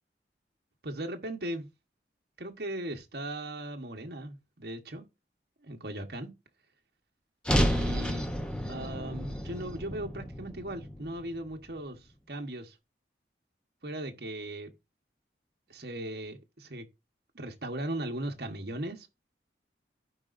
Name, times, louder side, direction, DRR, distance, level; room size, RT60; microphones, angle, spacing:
voice 1, 0.8-1.7 2.4-5.0 5.6-6.3 7.6-8.3 8.6-12.0 12.3-12.7 13.8-14.7 15.7-16.9 17.3-19.1, right 1 dB, 60° right, 1.2 m, -38 dB
sound 1, 7.4-11.7, equal, 5° left, 0.8 m, -31 dB
15.0 x 5.1 x 2.6 m
head